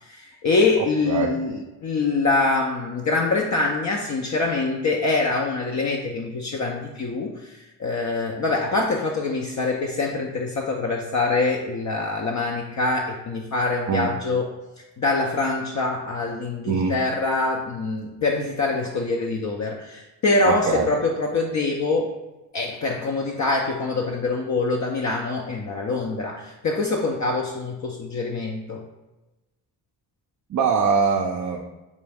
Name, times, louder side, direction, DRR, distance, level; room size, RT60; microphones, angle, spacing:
voice 1, 0.0-14.5 15.0-22.1 22.5-28.8, left 3 dB, 40° left, 0 dB, 0.5 m, -24 dB
voice 2, 0.8-1.4 13.9-14.1 16.7-17.0 20.5-20.9 30.5-31.7, right 5 dB, 40° right, 1 dB, 0.4 m, -23 dB
5.1 x 2.2 x 3.4 m, 1.1 s
cardioid pair, 70°, 44 cm